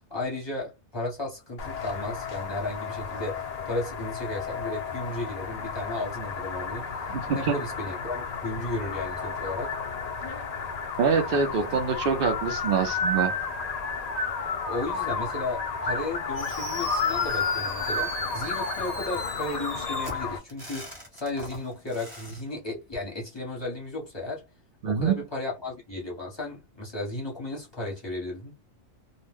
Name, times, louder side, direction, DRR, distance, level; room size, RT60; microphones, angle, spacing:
voice 1, 0.1-9.7 11.6-11.8 14.7-24.4 24.8-28.5, left 2 dB, 20° left, 1.0 m, -34 dB
sound 1, 1.6-20.4, left 4 dB, 70° left, 0.3 m, -32 dB
voice 2, 7.1-7.6 11.0-13.3 24.8-25.2, right 6 dB, 55° right, 0.7 m, -25 dB
Fireworks, 16.3-22.4, equal, 20° right, 1.0 m, -40 dB
2.5 x 2.1 x 3.4 m
omnidirectional pair, 1.4 m